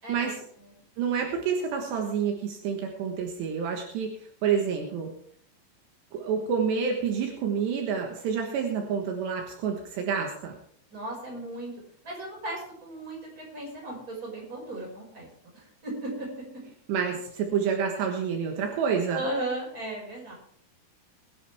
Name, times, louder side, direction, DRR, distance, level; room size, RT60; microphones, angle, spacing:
voice 1, 0.0-0.8 10.9-11.7 12.0-15.3 15.5-16.5 19.1-20.3, right 1 dB, 20° right, -2 dB, 6.1 m, -36 dB
voice 2, 1.0-5.1 6.1-10.5 16.9-19.2, right 6 dB, 75° right, 2 dB, 3.5 m, -28 dB
20.5 x 11.0 x 3.5 m, 0.63 s
omnidirectional pair, 5.1 m